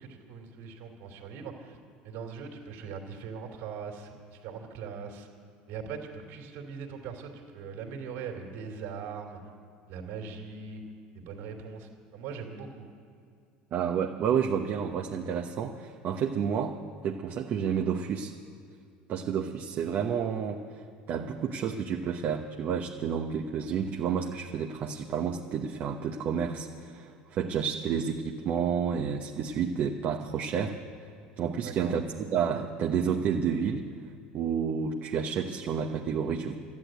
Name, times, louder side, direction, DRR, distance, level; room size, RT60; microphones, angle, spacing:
voice 1, 0.0-1.8 2.0-5.3 5.7-9.4 9.9-10.8 11.1-12.8 31.6-32.0, right 6 dB, 70° right, 2 dB, 3.0 m, -40 dB
voice 2, 13.7-16.8 17.0-18.3 19.1-20.6 21.1-30.8 31.4-33.8 34.3-36.6, right 7 dB, 50° right, 1 dB, 1.1 m, -30 dB
13.5 x 10.5 x 9.2 m, 2.4 s
hypercardioid pair, 80°, 4 cm